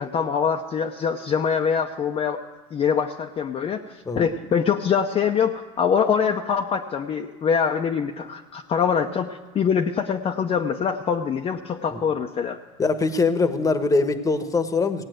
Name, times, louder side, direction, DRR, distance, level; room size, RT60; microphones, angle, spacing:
voice 1, 0.0-2.4 2.7-12.6, left 7 dB, 35° left, 2 dB, 0.8 m, -24 dB
voice 2, 12.8-15.0, left 3 dB, 20° left, 9 dB, 1.2 m, -22 dB
16.5 x 8.8 x 7.8 m, 1.4 s
supercardioid pair, 110°, 17 cm